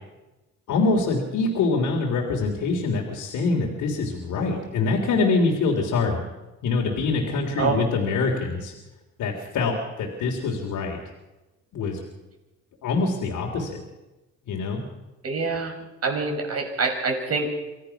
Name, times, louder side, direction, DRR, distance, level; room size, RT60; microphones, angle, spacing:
voice 1, 0.7-6.2 6.6-8.7 9.2-11.0 11.7-12.0 12.8-13.8 14.5-14.8, left 3 dB, 80° left, 0 dB, 3.5 m, -24 dB
voice 2, 15.2-15.7 16.0-17.5, right 4 dB, 55° right, 2 dB, 6.6 m, -25 dB
25.5 x 17.0 x 6.0 m, 1.1 s
cardioid pair, 90°, 30 cm